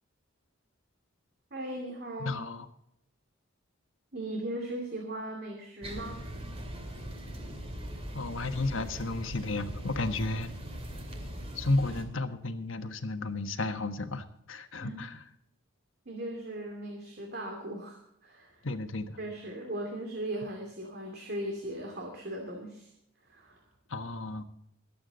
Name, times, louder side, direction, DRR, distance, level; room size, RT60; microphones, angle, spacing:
voice 1, 1.5-2.4 4.1-6.2 14.8-15.0 16.1-18.6 19.2-22.9 23.3-23.6, right 1 dB, 50° right, 2 dB, 2.5 m, -38 dB
voice 2, 2.2-2.7 8.1-10.5 11.5-15.2 18.6-19.2 23.9-24.4, left 2 dB, 70° left, 8 dB, 1.3 m, -33 dB
sound 1, 5.8-12.0, equal, 30° right, 2.6 m, -40 dB
23.0 x 8.6 x 4.0 m, 0.77 s
head